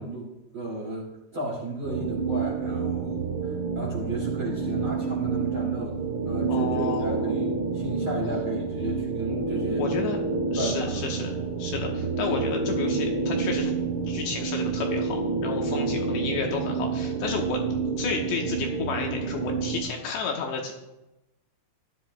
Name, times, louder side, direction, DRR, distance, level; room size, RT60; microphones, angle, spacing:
voice 1, 0.0-9.8 10.5-10.9 15.7-15.9, right 2 dB, 35° right, -4 dB, 2.3 m, -34 dB
sound 1, 1.8-19.8, right 6 dB, 65° right, 4.8 m, -30 dB
sound 2, 4.7-17.1, equal, 85° right, 0.6 m, -32 dB
voice 2, 6.5-7.3 9.7-10.2 10.5-11.3 11.6-13.7 14.1-17.6 18.0-20.7, left 5 dB, 75° left, 1 dB, 3.0 m, -32 dB
16.0 x 12.0 x 2.3 m, 0.98 s
omnidirectional pair, 5.6 m